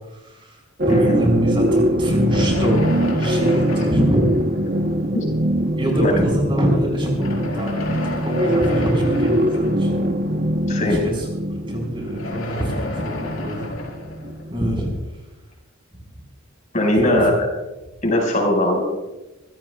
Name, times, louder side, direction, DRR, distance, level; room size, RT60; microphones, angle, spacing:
voice 1, 0.1-0.6 0.9-4.2 5.8-7.8 8.2-9.9 10.8-11.2 11.7-13.7 14.5-14.9 17.0-17.3, equal, 25° right, -1 dB, 4.7 m, -24 dB
sound 1, 0.8-15.1, right 1 dB, 45° right, 1.0 m, -23 dB
sound 2, 2.3-5.0 5.8-5.9 7.0-10.1 11.9-15.0, left 2 dB, 80° left, 4.4 m, -32 dB
voice 2, 16.7-17.3 18.0-18.8, left 1 dB, 35° left, 0 dB, 5.5 m, -19 dB
26.5 x 16.0 x 2.4 m, 1.0 s
head